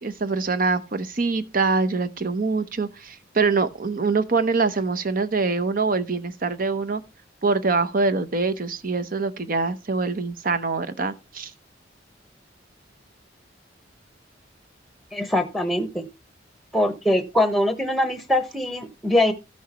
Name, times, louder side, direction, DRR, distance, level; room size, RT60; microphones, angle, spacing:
voice 1, 0.0-7.0 7.4-11.5, right 4 dB, 50° right, 0.8 m, -24 dB
voice 2, 15.1-16.0 16.7-19.3, left 1 dB, ahead, 1.0 m, -22 dB
15.0 x 6.3 x 3.0 m
head